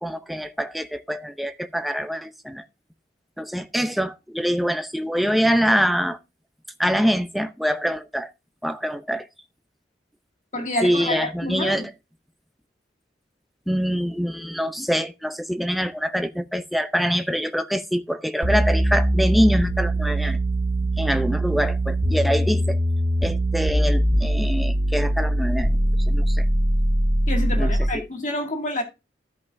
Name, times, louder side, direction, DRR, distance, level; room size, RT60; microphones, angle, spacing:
voice 1, 0.0-2.6 3.4-6.2 6.8-8.3 8.6-9.3 10.8-11.9 13.7-20.4 21.0-22.8 23.2-25.7 26.1-26.4 27.5-28.1, equal, ahead, 0.6 m, -24 dB
voice 2, 10.5-11.8 27.3-28.8, left 1 dB, 45° left, 2.0 m, -28 dB
sound 1, 18.4-28.0, right 1 dB, 50° right, 2.0 m, -22 dB
15.0 x 5.4 x 2.6 m
head